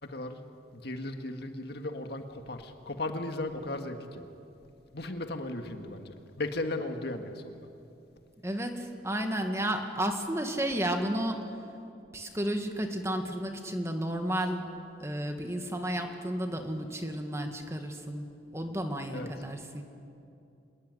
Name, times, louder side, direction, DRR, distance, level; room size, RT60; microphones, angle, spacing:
voice 1, 0.0-0.4 0.7-4.2 4.9-7.7 19.1-19.3, left 2 dB, 60° left, 6 dB, 1.9 m, -36 dB
voice 2, 8.4-11.4 12.1-14.6 15.0-18.3 18.5-19.8, right 1 dB, 15° right, 5 dB, 1.9 m, -32 dB
26.0 x 21.0 x 9.5 m, 2.6 s
head